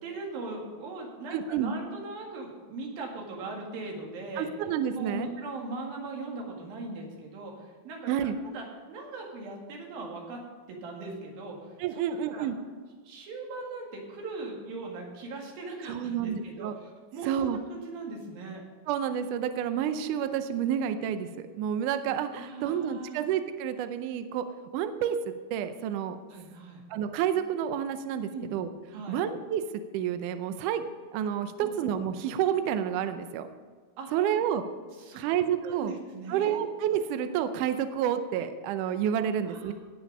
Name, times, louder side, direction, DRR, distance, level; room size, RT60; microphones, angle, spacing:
voice 1, 0.0-4.5 4.9-10.4 10.7-12.5 13.0-18.6 22.3-23.2 26.3-26.8 28.3-28.5 28.9-29.2 31.6-31.8 34.0-34.1 34.9-36.6 39.4-39.7, right 3 dB, 65° right, 0 dB, 3.7 m, -40 dB
voice 2, 1.3-1.7 4.4-5.3 8.1-8.4 11.8-12.6 15.9-16.7 17.2-17.6 18.9-24.5 24.7-25.2 25.5-26.2 26.9-28.7 29.1-29.6 29.9-30.8 31.1-33.5 34.1-34.7 35.2-35.9 36.3-39.7, right 9 dB, 85° right, 9 dB, 1.8 m, -29 dB
17.5 x 6.1 x 5.4 m, 1.5 s
omnidirectional pair, 4.5 m